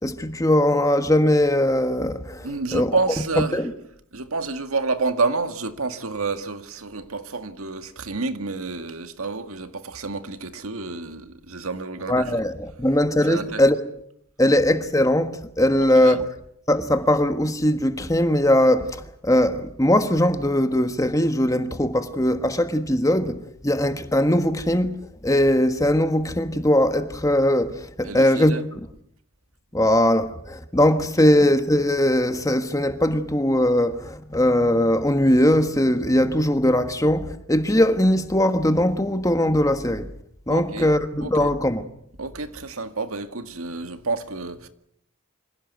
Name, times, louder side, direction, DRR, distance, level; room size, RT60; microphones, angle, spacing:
voice 1, 0.0-3.0 3.5-3.7 12.1-13.8 14.4-16.2 16.7-28.6 29.7-40.1 40.5-41.8, left 1 dB, 15° left, 1.3 m, -20 dB
voice 2, 2.4-3.6 4.1-12.3 13.3-13.6 15.9-16.2 28.0-28.6 40.5-40.9 41.2-41.5 42.2-44.7, right 3 dB, 85° right, 1.9 m, -29 dB
26.0 x 16.5 x 9.4 m
head